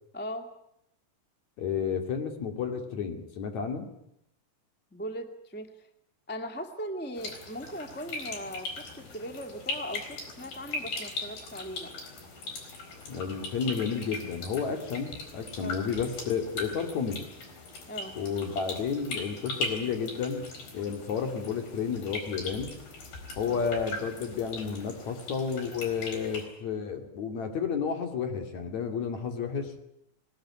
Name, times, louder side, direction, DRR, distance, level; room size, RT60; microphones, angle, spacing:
voice 1, 0.1-0.5 4.9-5.7 6.3-8.7 9.0-11.9 15.6-15.8 17.9-18.1 23.5-23.6, equal, 5° left, 6 dB, 1.0 m, -39 dB
voice 2, 1.6-3.9 13.1-17.3 18.1-20.5 20.7-22.7 23.4-29.7, left 6 dB, 55° left, 5 dB, 3.6 m, -31 dB
sound 1, 7.2-26.4, left 3 dB, 80° left, 6.1 m, -40 dB
22.0 x 20.0 x 9.8 m, 0.77 s
omnidirectional pair, 4.1 m